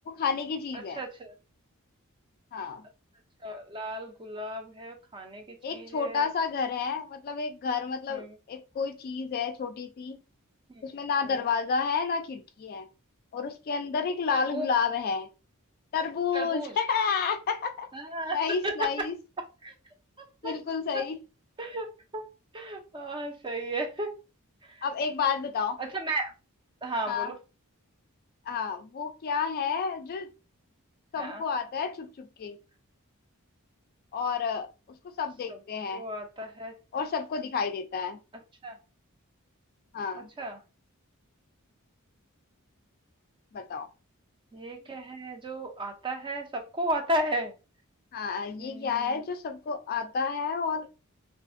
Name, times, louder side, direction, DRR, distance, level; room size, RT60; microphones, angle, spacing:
voice 1, 0.1-1.0 2.5-2.8 5.6-10.2 10.8-12.9 13.3-15.3 15.9-19.1 20.4-21.2 24.8-25.8 27.1-27.3 28.5-30.3 31.1-32.6 34.1-36.0 36.9-38.2 39.9-40.3 43.5-43.9 48.1-50.9, left 5 dB, 45° left, 0.3 m, -30 dB
voice 2, 0.7-1.3 3.4-6.2 8.1-8.3 10.7-10.8 11.3-11.4 14.3-14.7 16.3-16.8 17.9-18.4 18.6-18.9 19.6-19.7 20.4-20.5 20.9-21.0 21.6-21.9 22.1-22.3 22.5-24.1 24.7-24.8 25.8-26.3 26.8-27.4 31.2-31.4 35.9-36.7 38.6-38.8 40.1-40.6 44.5-47.5 48.6-49.2, right 1 dB, 20° right, 0.4 m, -34 dB
2.5 x 2.4 x 2.5 m
head